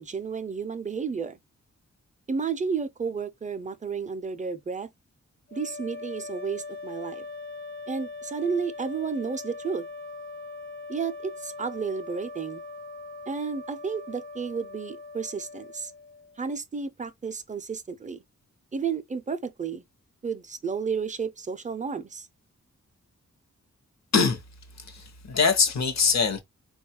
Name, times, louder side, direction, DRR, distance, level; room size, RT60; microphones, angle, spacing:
voice 1, 0.0-1.4 2.3-4.9 5.5-7.2 7.9-9.9 10.9-12.6 13.3-15.9 16.4-18.2 18.7-19.9 20.2-22.3, right 5 dB, 25° right, 0.4 m, -32 dB
sound 1, 5.5-16.4, left 3 dB, 30° left, 0.5 m, -41 dB
voice 2, 24.8-26.4, left 5 dB, 65° left, 0.7 m, -23 dB
3.9 x 2.3 x 2.8 m
wide cardioid pair, 100°, 29 cm